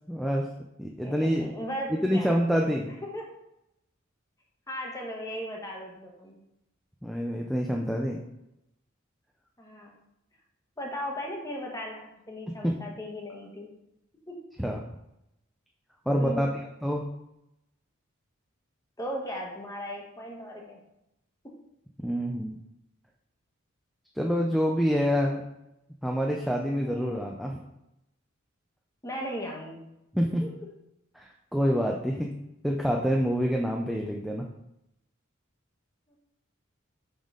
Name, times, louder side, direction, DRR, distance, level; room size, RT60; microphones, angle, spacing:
voice 1, 0.1-0.5 0.8-1.5 1.9-2.9 7.0-8.2 12.5-12.7 14.6-14.8 16.1-16.5 16.8-17.1 22.0-22.6 24.2-25.4 26.0-27.6 30.1-30.5 31.1-32.3 32.6-34.5, equal, ahead, 0 dB, 0.4 m, -27 dB
voice 2, 1.0-2.4 2.9-3.3 4.7-6.4 9.6-10.0 10.8-13.7 14.3-14.4 16.1-16.5 19.0-20.8 21.4-21.5 26.8-27.2 29.0-29.9 30.4-30.5 36.1-36.2, equal, 15° left, 0 dB, 1.1 m, -37 dB
5.4 x 5.3 x 3.7 m, 0.86 s
head